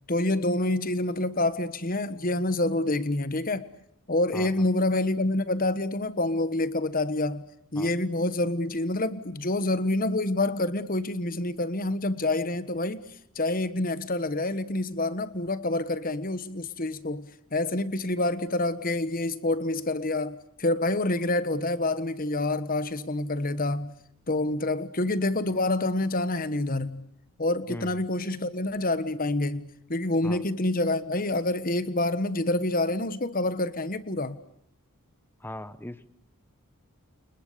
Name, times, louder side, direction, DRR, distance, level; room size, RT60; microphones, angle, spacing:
voice 1, 0.1-3.7 4.1-7.4 7.7-13.0 13.3-23.9 24.3-27.0 27.4-34.4, left 2 dB, 40° left, 1.4 m, -27 dB
voice 2, 27.7-28.0 30.2-30.4 35.4-36.1, left 1 dB, 10° left, 1.1 m, -39 dB
29.5 x 29.0 x 6.9 m
head